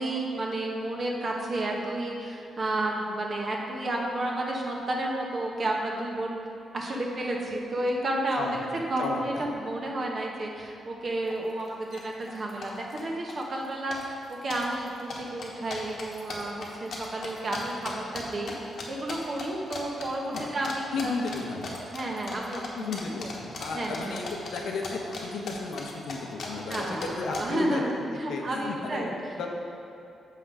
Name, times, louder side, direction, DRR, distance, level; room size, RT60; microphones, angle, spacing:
voice 1, 0.0-6.4 6.7-8.6 8.9-18.5 18.9-21.2 21.9-22.9 23.7-24.1 26.7-29.1, right 1 dB, 35° right, -1 dB, 1.0 m, -31 dB
voice 2, 9.0-9.4 20.3-21.7 22.5-27.8 28.3-29.5, left 4 dB, 80° left, 1 dB, 0.9 m, -34 dB
sound 1, 11.3-11.4 11.6-12.0 12.3-13.0 13.3-13.7 13.9-18.5 18.8-19.5 19.7-20.1 20.3-20.7 21.0-25.2 25.5-27.4, left 4 dB, 55° left, 1.1 m, -38 dB
6.7 x 5.8 x 4.8 m, 2.7 s
cardioid pair, 145°, 0 cm